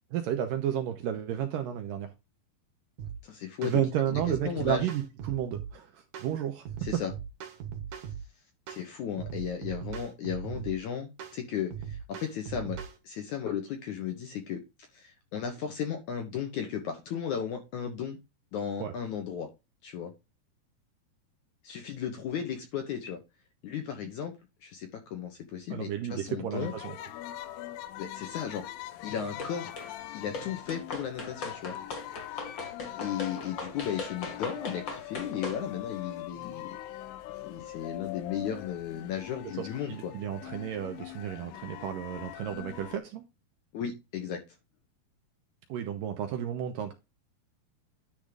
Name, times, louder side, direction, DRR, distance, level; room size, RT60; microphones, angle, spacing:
voice 1, 0.1-2.1 3.6-6.6 6.9-7.0 18.8-18.9 25.7-27.0 39.6-43.3 45.7-46.9, right 10 dB, 75° right, 2.1 m, -32 dB
sound 1, 3.0-3.2 3.6-3.8 4.1-5.7 6.1-6.3 6.7-8.3 8.7-8.9 9.2-10.8 11.2-11.4 11.7-13.0, right 8 dB, 60° right, 2.1 m, -39 dB
voice 2, 3.2-3.8 4.1-4.9 6.8-7.1 8.7-12.8 13.0-14.6 14.9-18.2 18.5-19.5 19.8-20.1 21.6-23.2 23.6-24.3 24.6-26.7 28.0-28.6 29.0-29.7 30.1-31.8 33.0-36.8 37.4-40.1 43.7-44.4, left 8 dB, 65° left, 2.0 m, -35 dB
sound 2, 26.5-43.0, left 14 dB, 85° left, 2.8 m, -42 dB
sound 3, 29.4-29.9 30.3-35.6, left 3 dB, 40° left, 1.8 m, -39 dB
10.5 x 3.7 x 5.1 m
omnidirectional pair, 4.7 m